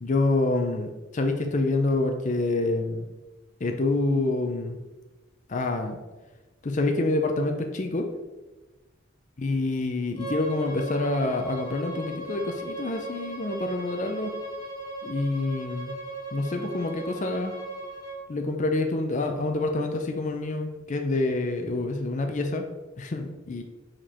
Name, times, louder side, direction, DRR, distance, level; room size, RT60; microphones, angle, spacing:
voice 1, 0.0-3.1 3.6-4.8 5.5-6.0 6.6-8.1 9.4-14.3 15.0-15.9 16.3-17.6 18.3-22.6 23.0-23.6, left 2 dB, 35° left, 4 dB, 0.5 m, -27 dB
Bowed string instrument, 10.1-18.2, right 2 dB, 20° left, 1.8 m, -37 dB
5.1 x 4.4 x 4.3 m, 1.1 s
head